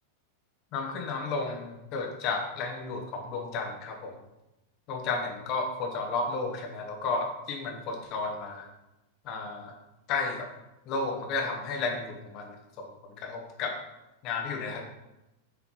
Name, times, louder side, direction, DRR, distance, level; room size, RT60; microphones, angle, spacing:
voice 1, 0.7-4.1 4.9-8.7 9.2-9.7 10.1-10.5 10.9-13.8 14.2-14.8, left 4 dB, 40° left, 2 dB, 1.4 m, -33 dB
7.8 x 4.4 x 3.9 m, 0.93 s
figure-of-eight pair, 90°, 0 cm